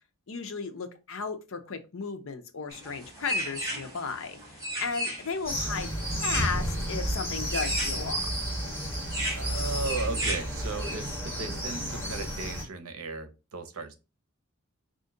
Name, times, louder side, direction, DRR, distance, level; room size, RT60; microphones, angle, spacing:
voice 1, 0.3-5.9 6.2-8.2, left 5 dB, 65° left, 7 dB, 0.7 m, -35 dB
sound 1, 2.7-10.9, right 1 dB, 15° right, 1.6 m, -36 dB
sound 2, 5.4-12.6, equal, 15° left, 1.8 m, -32 dB
voice 2, 9.4-13.9, right 3 dB, 70° right, 7 dB, 0.8 m, -36 dB
4.3 x 2.6 x 3.7 m, 0.28 s
head